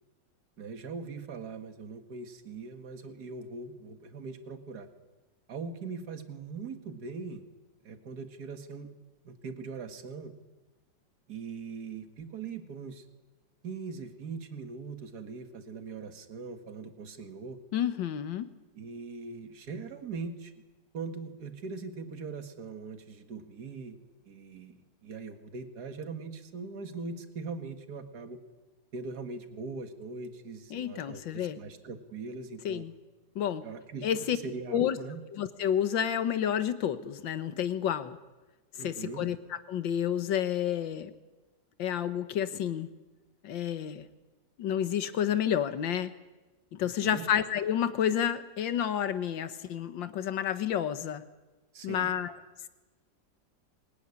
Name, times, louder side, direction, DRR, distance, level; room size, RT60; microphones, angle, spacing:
voice 1, 0.6-4.9 5.5-7.4 7.8-9.0 9.2-10.3 11.3-13.0 13.6-17.6 18.8-20.5 20.9-24.0 24.3-28.4 28.9-32.9 33.6-35.2 38.8-39.2 46.8-47.2 51.7-52.1, right 4 dB, 60° right, 7 dB, 2.2 m, -41 dB
voice 2, 17.7-18.5 30.7-31.6 32.7-32.9 33.4-33.6 34.0-34.4 34.7-35.0 35.3-38.2 38.8-41.1 41.8-42.9 43.4-44.1 44.6-46.1 46.7-51.2 51.8-52.3, left 9 dB, 80° left, 11 dB, 1.9 m, -30 dB
23.0 x 19.5 x 9.8 m, 1.2 s
omnidirectional pair, 2.0 m